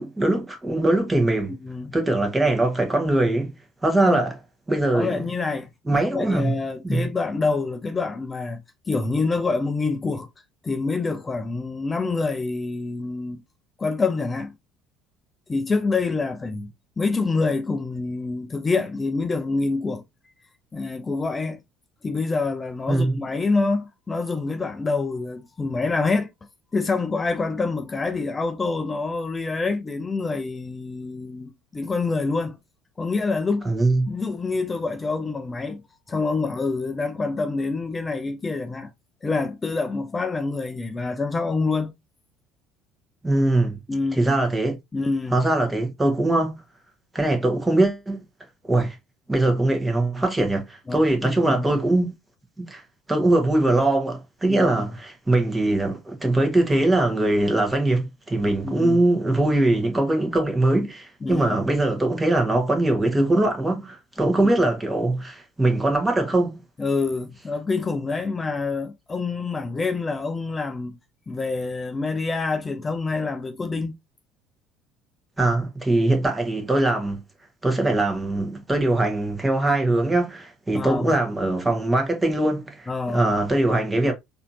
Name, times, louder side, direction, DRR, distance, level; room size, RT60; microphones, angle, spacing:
voice 1, 0.0-1.5 1.9-3.6 3.8-4.3 4.7-5.3 5.9-6.5 6.8-7.1 22.9-23.2 33.6-34.1 43.2-43.8 44.1-44.8 45.3-46.6 47.1-48.2 48.7-49.0 49.3-52.1 52.6-52.8 53.1-66.6 75.4-77.2 77.6-84.1, right 2 dB, 15° right, 1.4 m, -22 dB
voice 2, 1.5-1.9 4.1-4.2 4.9-8.6 8.9-10.3 10.6-13.4 13.8-14.5 15.5-20.0 20.7-21.6 22.0-26.3 26.7-32.6 33.0-33.7 34.1-35.8 36.1-38.9 39.2-41.9 43.9-44.3 44.9-45.4 50.9-51.8 54.5-54.8 58.6-59.0 61.2-61.6 64.4-64.5 66.8-71.0 71.3-74.0 80.7-81.2 82.9-83.3, left 3 dB, 25° left, 0.6 m, -26 dB
4.1 x 2.8 x 2.7 m
hypercardioid pair, 65°, 0 cm